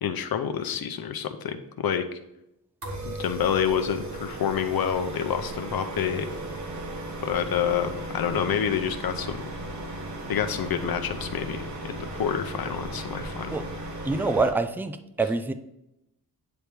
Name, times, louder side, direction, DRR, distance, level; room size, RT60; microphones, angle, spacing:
voice 1, 0.0-2.1 3.0-6.3 7.2-9.5 10.3-13.7, left 8 dB, 70° left, 8 dB, 0.7 m, -28 dB
sound 1, 2.8-14.5, right 1 dB, 50° right, 1.3 m, -36 dB
voice 2, 14.1-15.5, right 3 dB, 5° right, 10 dB, 0.3 m, -26 dB
9.6 x 3.4 x 4.5 m, 0.85 s
wide cardioid pair, 165°, 37 cm